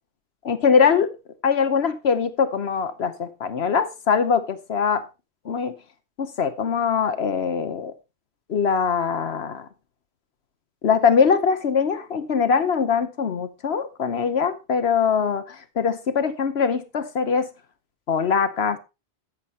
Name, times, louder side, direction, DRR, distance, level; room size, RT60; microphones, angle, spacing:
voice 1, 0.4-1.1 1.4-5.0 5.4-5.7 6.2-7.9 8.5-9.7 10.8-17.5 18.1-18.8, left 6 dB, 70° left, 1.2 m, -22 dB
13.0 x 8.0 x 4.1 m
omnidirectional pair, 1.1 m